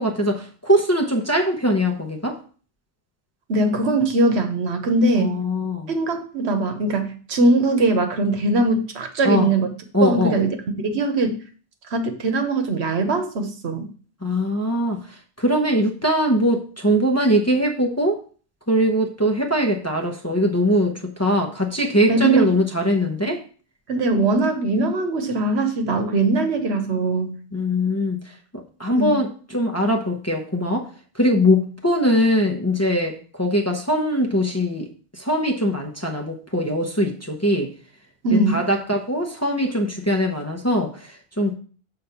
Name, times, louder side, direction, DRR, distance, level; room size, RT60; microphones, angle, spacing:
voice 1, 0.0-2.4 5.2-5.9 9.2-9.5 9.9-10.4 14.2-15.0 15.4-18.2 18.7-23.4 27.5-28.2 28.5-30.9 31.1-37.7 38.3-41.5, equal, 15° left, 1 dB, 0.7 m, -21 dB
voice 2, 3.5-5.4 5.9-9.7 10.0-10.5 10.9-11.4 11.9-13.9 22.1-22.5 23.9-27.4 28.9-29.2 38.2-38.6, right 2 dB, 75° right, 7 dB, 1.2 m, -21 dB
6.6 x 3.9 x 5.7 m, 0.41 s
omnidirectional pair, 1.1 m